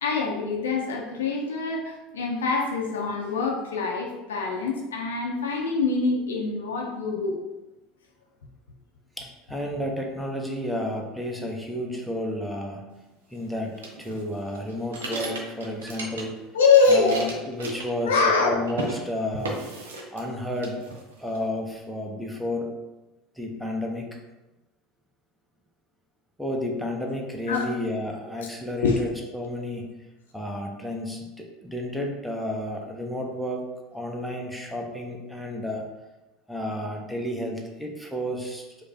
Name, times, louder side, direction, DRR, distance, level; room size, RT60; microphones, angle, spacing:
voice 1, 0.0-7.4 16.5-17.2 18.1-18.6 27.5-27.7 28.8-29.0, left 4 dB, 75° left, 0 dB, 0.6 m, -24 dB
voice 2, 9.2-12.8 13.3-13.7 14.0-16.4 16.9-19.6 20.1-20.8 21.2-22.7 23.4-24.2 26.4-29.9 30.3-33.6 33.9-35.8 36.5-38.6, left 1 dB, ahead, 0 dB, 0.7 m, -31 dB
sound 1, 13.8-16.4 16.7-18.4 18.7-19.0 19.4-20.3 20.6-21.4, right 2 dB, 75° right, 0.6 m, -36 dB
4.8 x 2.2 x 2.7 m, 1.0 s
figure-of-eight pair, 70°, 0 cm